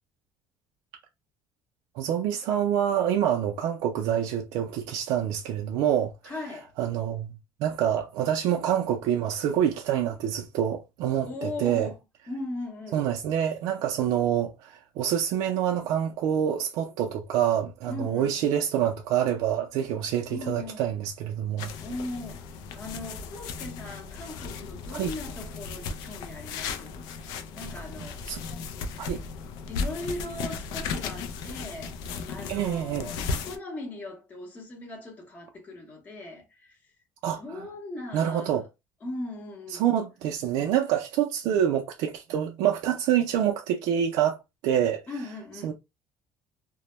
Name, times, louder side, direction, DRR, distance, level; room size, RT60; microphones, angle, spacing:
voice 1, 1.9-6.3 6.8-11.9 12.9-21.7 24.9-25.1 28.3-28.4 29.0-29.2 32.5-33.1 37.2-37.6 38.1-38.7 39.7-45.0 45.6-45.7, right 10 dB, 75° right, 0.4 m, -26 dB
voice 2, 6.2-6.7 11.3-12.0 12.3-13.1 17.9-18.3 20.3-20.9 21.8-22.5 22.7-27.1 27.5-28.4 29.7-32.0 32.3-36.8 37.4-38.6 39.0-39.8 45.1-45.7, left 2 dB, 25° left, 0.7 m, -38 dB
sound 1, 21.6-33.6, left 5 dB, 75° left, 0.4 m, -36 dB
2.1 x 2.0 x 2.9 m
cardioid pair, 170°, 7 cm